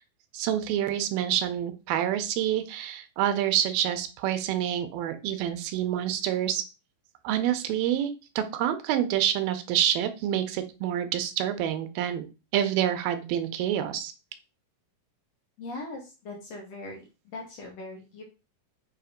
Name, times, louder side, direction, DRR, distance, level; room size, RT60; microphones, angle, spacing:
voice 1, 0.3-6.6 7.2-12.3 12.5-14.1, right 11 dB, 85° right, 9 dB, 2.5 m, -27 dB
voice 2, 15.6-18.2, left 2 dB, 60° left, 0 dB, 2.0 m, -40 dB
6.8 x 2.9 x 5.0 m, 0.29 s
omnidirectional pair, 4.1 m